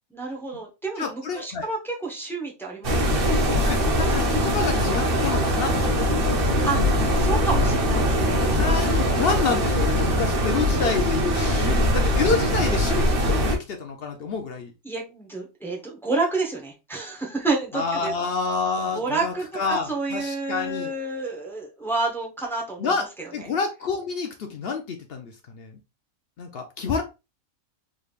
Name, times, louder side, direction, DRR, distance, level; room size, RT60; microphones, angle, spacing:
voice 1, 0.1-3.4 6.6-6.8 7.2-8.6 11.5-11.9 14.8-18.3 18.9-23.5, right 3 dB, ahead, -2 dB, 0.6 m, -30 dB
voice 2, 1.0-1.7 3.7-6.6 8.5-14.7 17.7-20.9 22.8-23.0 23.3-25.8 26.4-27.0, left 5 dB, 60° left, 5 dB, 0.6 m, -28 dB
sound 1, 2.8-13.6, equal, 45° right, 0.9 m, -22 dB
3.8 x 3.2 x 2.3 m, 0.27 s
omnidirectional pair, 1.5 m